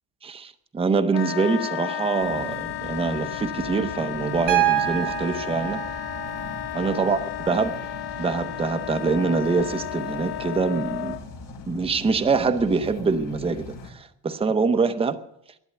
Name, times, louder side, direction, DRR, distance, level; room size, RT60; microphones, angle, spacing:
voice 1, 0.2-5.8 6.7-7.2 7.5-7.8 8.2-11.2 11.7-15.2, right 4 dB, 15° right, 0.7 m, -24 dB
Wind instrument woodwind instrument, 1.1-11.2, left 13 dB, 65° left, 1.4 m, -33 dB
sound 1, 2.2-13.9, left 3 dB, 50° left, 3.7 m, -40 dB
Piano, 4.5-8.5 10.0-10.1, right 13 dB, 85° right, 1.6 m, -28 dB
12.0 x 11.5 x 7.9 m
cardioid pair, 140°, 42 cm